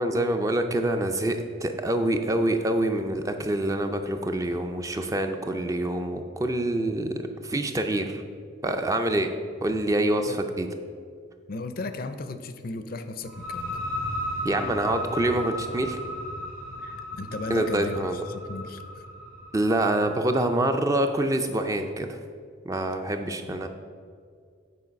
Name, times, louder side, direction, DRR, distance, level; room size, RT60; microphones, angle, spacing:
voice 1, 0.0-8.2 8.6-9.3 9.6-10.7 14.4-16.0 17.5-18.2 19.5-22.2 22.6-23.7, right 1 dB, 15° right, 6 dB, 0.3 m, -26 dB
voice 2, 11.5-13.8 16.8-19.0 23.3-23.7, left 3 dB, 45° left, 9 dB, 0.4 m, -36 dB
sound 1, 13.2-20.7, left 1 dB, 90° right, 2.2 m, -35 dB
8.5 x 4.5 x 5.2 m, 2.1 s
head